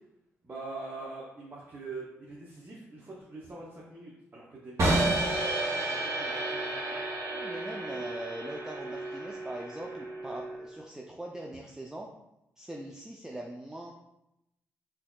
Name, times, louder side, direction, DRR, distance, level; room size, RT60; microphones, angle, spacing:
voice 1, 0.4-5.0 5.3-7.0, right 3 dB, 35° right, -4 dB, 0.7 m, -44 dB
sound 1, 4.8-10.8, right 2 dB, 65° right, 1.2 m, -31 dB
voice 2, 7.3-12.1 12.6-13.9, right 1 dB, 10° right, -1 dB, 0.4 m, -41 dB
4.2 x 2.7 x 2.3 m, 0.87 s
cardioid pair, 65°, 6 cm